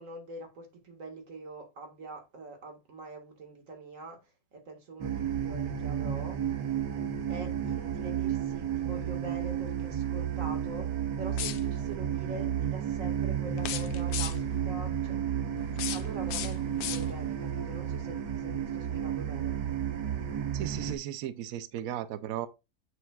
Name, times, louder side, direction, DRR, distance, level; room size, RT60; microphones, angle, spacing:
voice 1, 0.0-6.4 7.3-15.2 15.5-19.6, right 3 dB, 45° right, 2.0 m, -44 dB
sound 1, 5.0-21.0, right 9 dB, 65° right, 1.4 m, -32 dB
sound 2, 11.3-12.0 13.5-14.6 15.6-17.4, left 12 dB, 85° left, 1.4 m, -38 dB
voice 2, 20.5-22.5, right 11 dB, 80° right, 0.7 m, -36 dB
8.2 x 6.5 x 2.3 m
omnidirectional pair, 2.0 m